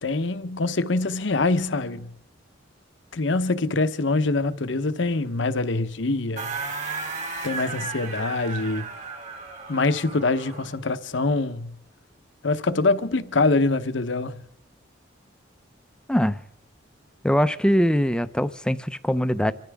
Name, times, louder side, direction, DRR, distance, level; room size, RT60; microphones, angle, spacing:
voice 1, 0.0-2.1 3.1-6.5 7.4-8.9 9.7-11.7 12.4-14.3, left 3 dB, 65° left, 0.9 m, -24 dB
sound 1, 6.4-10.8, right 4 dB, 40° right, 2.6 m, -34 dB
voice 2, 16.1-16.4 17.2-19.5, equal, 5° left, 0.5 m, -22 dB
26.5 x 13.5 x 3.5 m
head